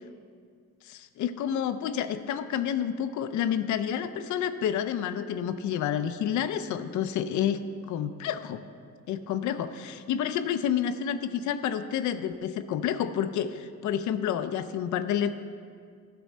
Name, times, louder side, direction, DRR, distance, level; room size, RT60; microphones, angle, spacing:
voice 1, 0.8-7.6 7.9-8.6 9.1-15.3, left 9 dB, 75° left, 11 dB, 0.5 m, -29 dB
10.5 x 6.1 x 4.2 m, 2.1 s
cardioid pair, 90°, 30 cm